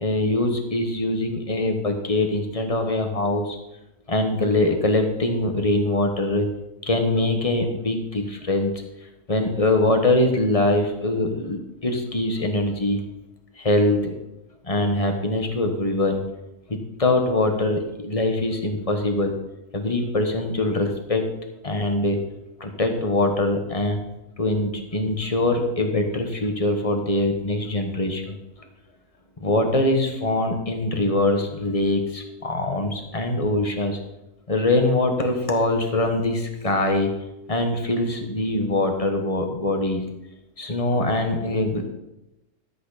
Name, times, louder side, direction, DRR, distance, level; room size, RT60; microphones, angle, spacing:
voice 1, 0.0-3.6 4.1-6.5 6.9-8.7 9.3-13.0 13.6-14.1 14.6-16.2 16.7-19.3 19.7-21.2 21.6-22.2 22.6-24.0 24.4-28.4 29.4-34.0 34.5-37.1 37.5-40.0 40.6-41.9, left 2 dB, 25° left, 4 dB, 1.4 m, -23 dB
13.0 x 8.5 x 4.2 m, 0.92 s
omnidirectional pair, 1.6 m